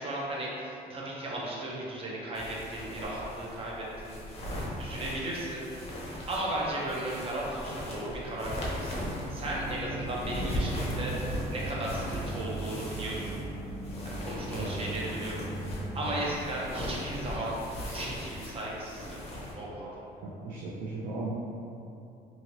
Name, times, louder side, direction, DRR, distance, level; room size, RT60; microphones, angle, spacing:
voice 1, 0.0-4.4 4.8-5.6 6.3-13.3 14.0-17.6 17.8-19.1 19.5-19.9, right 1 dB, 35° right, -5 dB, 0.7 m, -36 dB
sound 1, 2.3-19.5, left 1 dB, 35° left, 0.7 m, -39 dB
sound 2, 8.9-16.0, right 2 dB, ahead, 0.3 m, -38 dB
voice 2, 20.2-21.3, right 3 dB, 85° right, -6 dB, 0.5 m, -37 dB
2.8 x 2.8 x 2.9 m, 2.7 s
cardioid pair, 110°, 17 cm